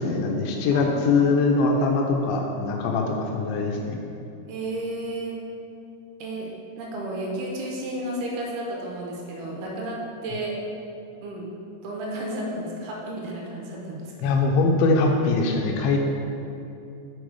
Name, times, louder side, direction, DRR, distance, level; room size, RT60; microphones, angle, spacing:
voice 1, 0.0-4.0 14.2-16.0, left 3 dB, 90° left, 1 dB, 2.8 m, -22 dB
voice 2, 0.7-1.3 4.5-5.4 6.2-6.5 6.8-10.6 11.2-11.5 11.8-14.0, right 1 dB, 75° right, -2 dB, 2.7 m, -32 dB
7.8 x 4.2 x 4.8 m, 2.7 s
omnidirectional pair, 5.0 m